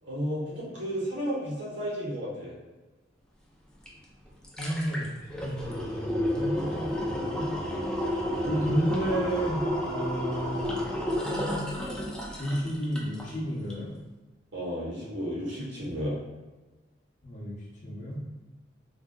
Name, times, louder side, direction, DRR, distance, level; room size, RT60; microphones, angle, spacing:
voice 1, 0.0-2.5 14.5-16.2, equal, 75° right, -6 dB, 1.2 m, -33 dB
sound 1, 3.9-4.0 4.3-13.3 13.7-13.8, left 1 dB, 5° left, 0.3 m, -31 dB
voice 2, 4.6-5.1 5.4-7.5 8.4-10.7 12.3-13.9 17.2-17.5 17.8-18.2, right 1 dB, 40° left, -5 dB, 0.7 m, -31 dB
3.4 x 2.6 x 2.2 m, 1.2 s
head